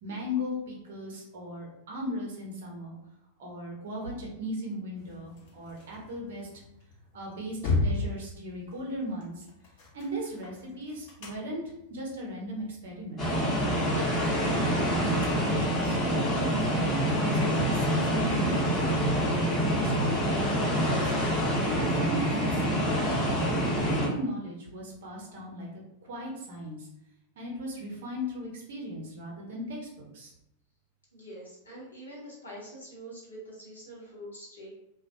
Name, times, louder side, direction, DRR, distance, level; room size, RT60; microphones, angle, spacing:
voice 1, 0.0-3.0 3.4-6.5 7.1-9.4 9.9-11.6 11.9-13.2 13.9-14.0 14.4-16.0 16.3-19.0 19.5-21.1 21.6-23.5 23.9-25.7 26.0-26.9 27.4-30.3, equal, 55° right, -1 dB, 0.7 m, -37 dB
sound 1, 4.9-19.6, left 3 dB, 50° left, 0.8 m, -39 dB
sound 2, 13.2-24.1, equal, 20° left, 0.9 m, -26 dB
voice 2, 31.1-34.7, equal, 80° left, -6 dB, 0.9 m, -45 dB
2.3 x 2.1 x 2.7 m, 0.83 s
figure-of-eight pair, 90°, 0 cm